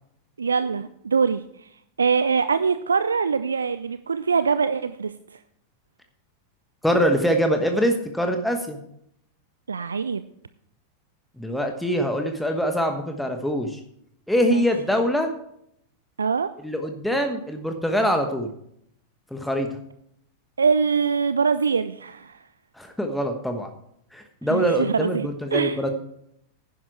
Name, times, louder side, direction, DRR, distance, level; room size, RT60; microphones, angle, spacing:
voice 1, 0.4-1.7 2.0-5.1 9.7-10.2 14.5-14.7 16.2-16.5 20.6-22.4 24.5-25.8, right 5 dB, 75° right, 13 dB, 0.4 m, -23 dB
voice 2, 6.8-8.8 11.4-13.8 14.3-15.3 16.6-18.5 19.3-19.7 22.8-23.7 24.1-25.9, equal, 5° left, 4 dB, 1.2 m, -24 dB
10.5 x 10.5 x 4.7 m, 0.72 s
figure-of-eight pair, 90°, 0 cm